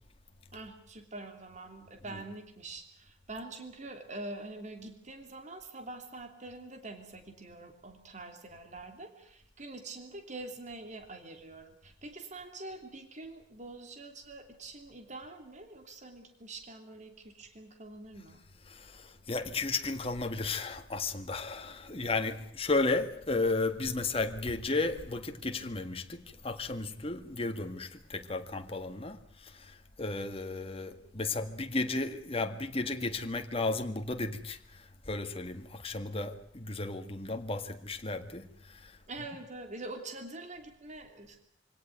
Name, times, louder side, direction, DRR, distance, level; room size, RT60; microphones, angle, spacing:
voice 1, 0.5-18.4 39.1-41.4, right 2 dB, 40° right, 3.0 m, -45 dB
voice 2, 18.7-39.3, left 3 dB, 30° left, 1.8 m, -34 dB
24.5 x 17.5 x 9.4 m
head